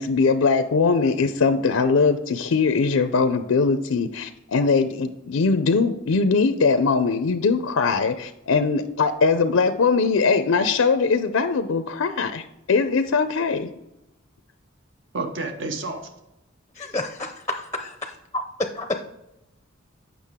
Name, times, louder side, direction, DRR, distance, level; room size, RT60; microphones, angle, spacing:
voice 1, 0.0-13.7, left 4 dB, 85° left, 9 dB, 0.5 m, -21 dB
voice 2, 15.1-16.0, right 3 dB, 65° right, 6 dB, 0.9 m, -29 dB
voice 3, 16.7-18.9, left 2 dB, 15° left, 5 dB, 0.5 m, -30 dB
8.3 x 6.0 x 3.6 m, 0.91 s
head